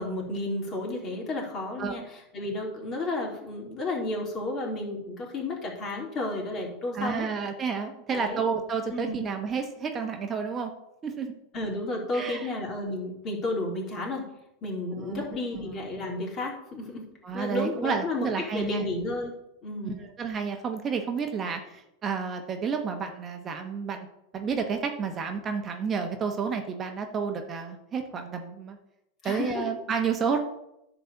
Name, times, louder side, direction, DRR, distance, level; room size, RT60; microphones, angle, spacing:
voice 1, 0.0-7.3 8.1-8.4 8.9-9.2 11.5-14.3 14.6-17.1 17.3-19.3 19.6-20.0 29.2-29.6, left 2 dB, 35° left, -2 dB, 3.3 m, -32 dB
voice 2, 6.9-10.7 11.0-11.3 12.1-12.5 15.0-15.3 17.2-18.9 19.8-24.1 24.3-28.8 29.2-30.4, right 6 dB, 30° right, 4 dB, 1.1 m, -30 dB
10.0 x 4.0 x 7.1 m, 0.85 s
hypercardioid pair, 110°, 0 cm